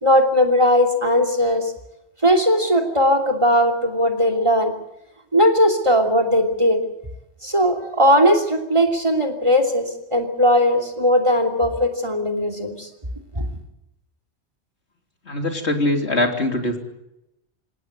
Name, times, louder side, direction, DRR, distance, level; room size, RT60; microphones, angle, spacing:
voice 1, 0.0-1.6 2.2-4.7 5.3-6.8 7.4-12.9 13.3-13.4, equal, 25° right, 8 dB, 3.1 m, -18 dB
voice 2, 15.3-16.8, left 1 dB, 75° left, 3 dB, 3.7 m, -22 dB
28.0 x 17.0 x 8.1 m, 0.86 s
omnidirectional pair, 1.1 m